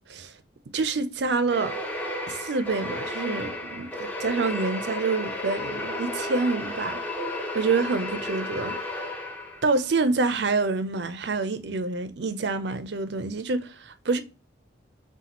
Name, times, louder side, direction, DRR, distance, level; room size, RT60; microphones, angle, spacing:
voice 1, 0.7-1.7 2.3-7.0 7.5-8.8 9.6-14.2, right 3 dB, 60° right, 0.5 m, -27 dB
sound 1, 1.5-9.8, left 1 dB, 10° left, 0.7 m, -33 dB
5.8 x 2.3 x 2.9 m
head